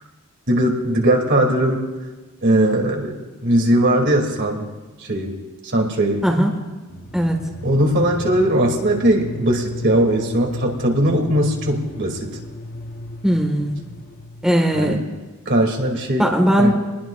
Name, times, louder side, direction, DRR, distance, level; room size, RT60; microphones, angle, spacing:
voice 1, 0.5-1.8 2.4-3.1 3.4-4.6 5.1-5.4 5.7-6.3 7.6-12.3 14.7-15.0 15.5-16.3 16.6-16.7, right 1 dB, 55° right, 1 dB, 2.6 m, -19 dB
sound 1, 6.9-14.7, left 1 dB, 45° left, 1.0 m, -35 dB
voice 2, 13.2-13.8 14.4-15.0 16.2-16.7, equal, 5° right, 0 dB, 1.5 m, -18 dB
28.0 x 20.5 x 2.4 m, 1.3 s
head